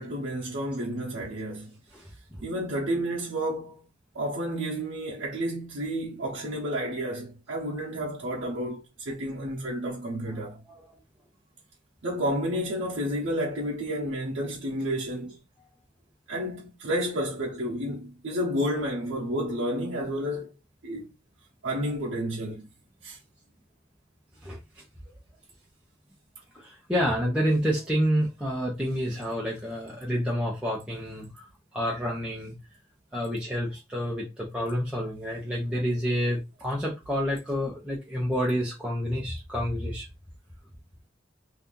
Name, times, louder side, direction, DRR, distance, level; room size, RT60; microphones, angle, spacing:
voice 1, 0.0-1.7 2.4-3.8 4.1-10.6 12.0-15.4 16.3-20.5 20.8-21.1 21.6-22.7 23.0-23.2, equal, 75° right, 0.8 m, -31 dB
voice 2, 1.9-2.4 24.4-24.6 26.5-31.5 31.7-32.5 33.1-40.0, equal, 5° right, 0.7 m, -29 dB
2.7 x 2.4 x 3.6 m
head